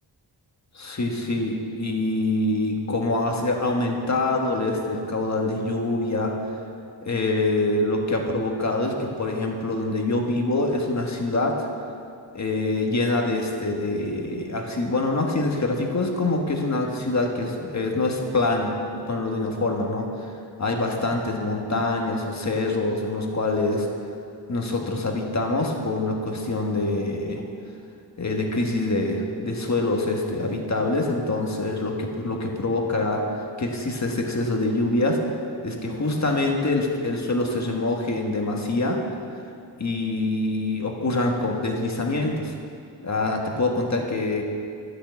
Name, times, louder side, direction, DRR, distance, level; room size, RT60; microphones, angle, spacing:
voice 1, 0.7-6.4 7.0-11.7 12.3-18.8 19.1-20.3 20.6-23.9 24.5-27.4 28.2-35.2 35.6-39.0 39.8-42.5 43.0-44.4, left 2 dB, 40° left, 1 dB, 1.6 m, -25 dB
11.5 x 6.7 x 8.2 m, 2.4 s
wide cardioid pair, 105°, 42 cm